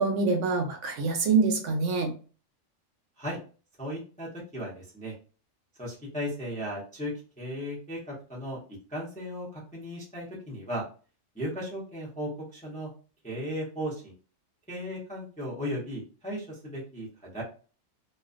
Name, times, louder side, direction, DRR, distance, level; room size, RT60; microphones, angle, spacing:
voice 1, 0.0-2.1, right 4 dB, 70° right, 4 dB, 0.9 m, -25 dB
voice 2, 3.8-5.1 5.8-8.6 8.9-10.8 11.3-12.9 13.2-14.1 14.7-17.4, equal, 10° left, -5 dB, 0.5 m, -36 dB
2.4 x 2.2 x 2.4 m, 0.37 s
omnidirectional pair, 1.3 m